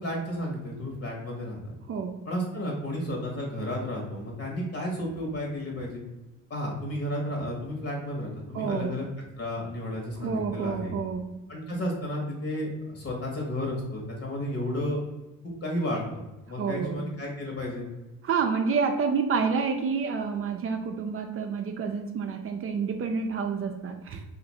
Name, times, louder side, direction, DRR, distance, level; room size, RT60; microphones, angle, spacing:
voice 1, 0.0-1.7 2.2-6.0 6.5-9.0 9.4-11.0 11.5-15.0 15.4-17.9, equal, 50° left, -1 dB, 1.2 m, -32 dB
voice 2, 1.9-2.2 8.5-9.0 10.2-11.3 16.6-17.0 18.2-24.2, right 5 dB, 50° right, 5 dB, 0.4 m, -28 dB
2.6 x 2.5 x 4.0 m, 1.0 s
cardioid pair, 90°, 30 cm